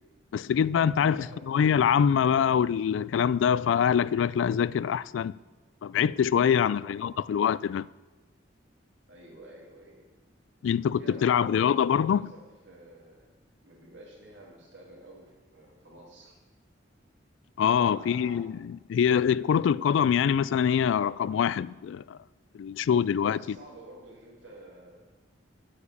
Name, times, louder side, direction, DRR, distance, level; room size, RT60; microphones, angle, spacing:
voice 1, 0.3-5.3 5.8-7.9 10.6-12.3 17.6-22.2 22.5-23.6, left 8 dB, 80° left, 0.3 m, -24 dB
voice 2, 1.1-1.6 6.6-7.5 9.1-10.1 11.0-13.3 13.6-16.4 17.8-18.4 23.2-25.0, right 1 dB, 75° right, 2.9 m, -50 dB
8.7 x 7.1 x 8.5 m
head